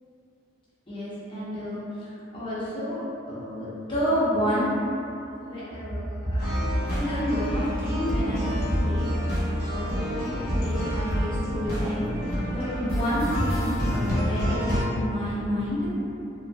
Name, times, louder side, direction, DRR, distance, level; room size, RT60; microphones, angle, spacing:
voice 1, 0.9-4.7 5.4-6.6 6.9-8.5 8.8-9.1 9.7-15.9, equal, 25° left, -10 dB, 0.7 m, -29 dB
sound 1, 6.4-14.8, equal, 55° left, 0.9 m, -28 dB
2.9 x 2.6 x 2.3 m, 2.8 s
head